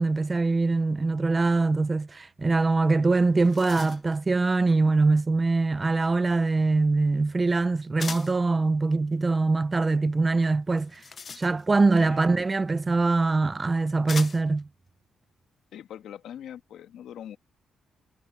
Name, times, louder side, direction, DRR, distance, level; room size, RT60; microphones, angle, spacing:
voice 1, 0.0-11.0 11.4-14.7, right 3 dB, 20° right, 0.4 m, -23 dB
sound 1, 2.9-3.0 3.2-4.2 8.0-8.4 10.7-11.9 13.0-13.1 14.1-14.6, left 5 dB, 35° left, 0.5 m, -39 dB
voice 2, 12.0-12.3 15.7-17.4, left 10 dB, 80° left, 2.0 m, -42 dB
cardioid pair, 135°, 0 cm